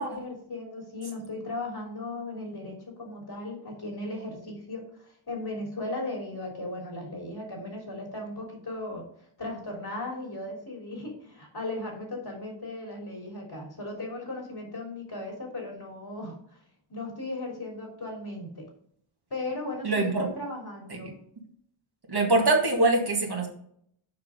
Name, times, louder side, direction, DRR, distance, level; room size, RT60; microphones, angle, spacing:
voice 1, 0.0-9.0 9.4-16.6 16.9-18.7 19.3-21.2, left 2 dB, 50° left, 0 dB, 3.6 m, -37 dB
voice 2, 19.8-20.3 22.1-23.5, right 2 dB, 50° right, 0 dB, 2.0 m, -23 dB
6.9 x 4.8 x 5.2 m, 0.65 s
cardioid pair, 50°, 49 cm